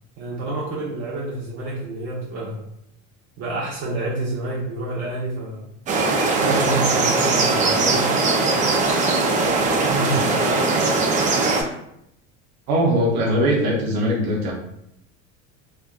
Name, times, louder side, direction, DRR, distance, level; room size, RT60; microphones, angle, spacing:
voice 1, 0.2-2.6 3.4-5.7 6.4-8.1 9.9-10.2, right 2 dB, 60° right, -5 dB, 0.8 m, -28 dB
sound 1, 5.9-11.6, right 3 dB, 25° right, 0.3 m, -20 dB
voice 2, 12.7-14.5, equal, 90° right, -3 dB, 0.7 m, -20 dB
3.3 x 2.2 x 2.4 m, 0.79 s
cardioid pair, 135°, 31 cm